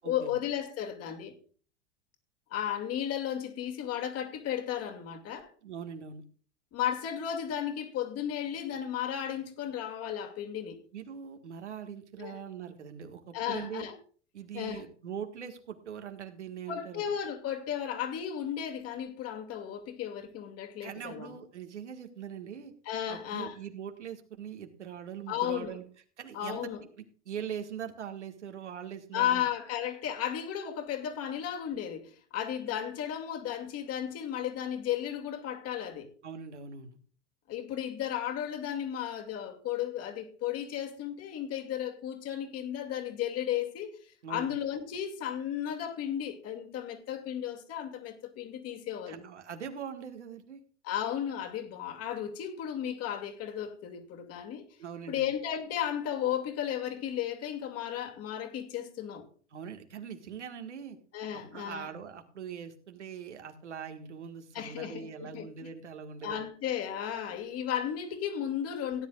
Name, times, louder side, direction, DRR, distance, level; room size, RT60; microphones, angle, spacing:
voice 1, 0.0-1.3 2.5-5.5 6.7-10.8 12.2-12.4 13.3-14.0 14.5-14.8 16.7-21.4 22.9-23.6 25.3-25.7 26.3-26.8 29.1-36.1 37.5-49.2 50.8-54.7 55.1-59.3 61.1-61.9 64.5-65.5 66.2-69.1, left 10 dB, 45° left, 2.5 m, -34 dB
voice 2, 5.6-6.2 10.9-13.8 14.3-17.0 20.8-22.7 23.1-25.8 26.2-26.6 27.3-29.4 36.2-37.0 44.2-44.5 49.1-50.6 54.8-55.3 59.5-61.0 61.3-66.4, right 8 dB, 80° right, 1.8 m, -42 dB
17.0 x 10.5 x 2.5 m
hypercardioid pair, 85°, 35 cm